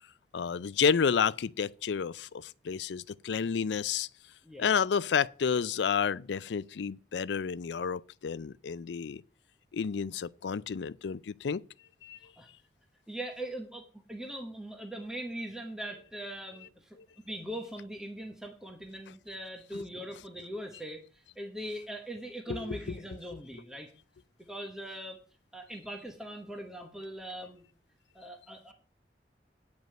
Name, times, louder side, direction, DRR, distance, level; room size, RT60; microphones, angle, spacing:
voice 1, 0.3-4.1 4.6-9.2 9.7-11.6 12.0-12.2 19.7-19.8 22.5-23.0, left 6 dB, 80° left, 0.4 m, -30 dB
voice 2, 13.1-17.0 17.2-23.9 24.5-25.2 25.5-27.6 28.1-28.7, right 1 dB, 5° right, 1.0 m, -41 dB
9.3 x 5.2 x 7.6 m
head